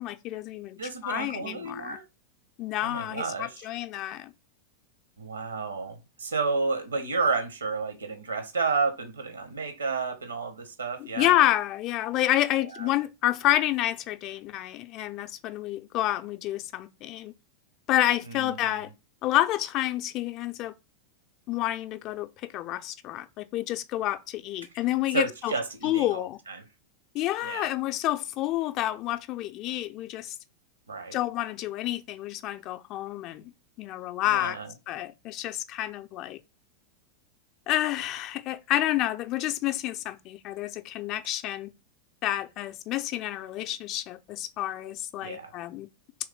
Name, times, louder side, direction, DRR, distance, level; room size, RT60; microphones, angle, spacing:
voice 1, 0.0-0.8 1.0-2.0 2.6-4.3 11.2-17.3 17.9-18.9 19.2-20.7 21.5-22.3 22.5-25.5 25.8-26.4 27.1-30.3 31.1-33.5 33.8-34.6 34.9-36.4 37.7-41.7 42.2-45.9, left 14 dB, 40° left, 0.4 m, -29 dB
voice 2, 0.8-2.0 2.8-3.7 5.2-11.3 12.7-12.9 18.2-18.9 25.1-26.7 27.4-27.7 30.9-31.2 34.2-34.7 45.2-45.5, right 4 dB, 75° right, 0.9 m, -31 dB
3.1 x 3.1 x 3.7 m
figure-of-eight pair, 90°, 0 cm